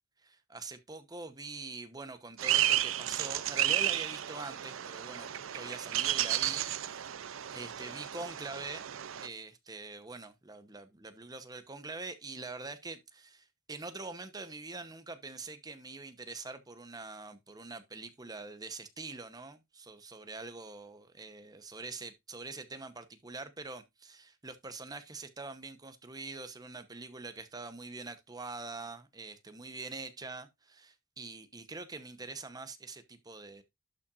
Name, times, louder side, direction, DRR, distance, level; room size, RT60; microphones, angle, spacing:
voice 1, 0.2-7.1 7.5-8.9 9.2-33.6, right 3 dB, 20° right, 0.9 m, -44 dB
sound 1, 2.4-9.3, right 12 dB, 80° right, 0.6 m, -32 dB
11.5 x 5.8 x 2.5 m
head